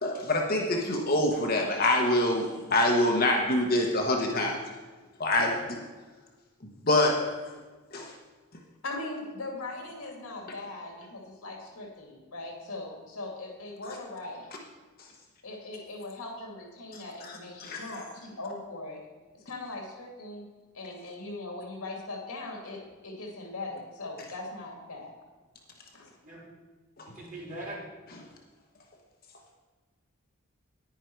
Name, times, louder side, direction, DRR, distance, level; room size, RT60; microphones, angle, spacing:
voice 1, 0.0-4.6 5.2-5.8 6.8-7.3 7.9-8.1 13.8-14.0 16.9-17.8 27.0-27.1 28.1-28.2, left 1 dB, 40° left, 1 dB, 1.1 m, -26 dB
voice 2, 8.8-14.5 15.4-19.0 19.5-20.4 20.7-25.1 25.9-26.1, left 2 dB, 85° left, 1 dB, 2.4 m, -40 dB
voice 3, 27.2-27.8, right 1 dB, 40° right, -6 dB, 3.7 m, -41 dB
10.0 x 9.9 x 4.6 m, 1.3 s
head